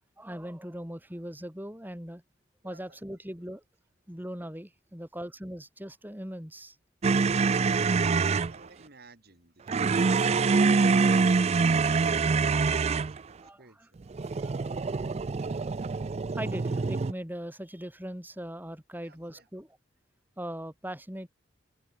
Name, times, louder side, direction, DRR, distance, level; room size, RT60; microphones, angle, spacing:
voice 1, 0.2-2.2 2.6-3.6 4.1-6.8 13.4-13.9 14.4-14.7 16.4-19.8 20.4-21.3, equal, 10° right, 3.6 m, -40 dB
voice 2, 2.6-3.1 8.1-14.0 18.9-19.5, right 3 dB, 55° right, 4.6 m, -55 dB
sound 1, 7.0-8.5 9.7-13.2 14.1-17.1, right 4 dB, 35° right, 0.4 m, -25 dB
head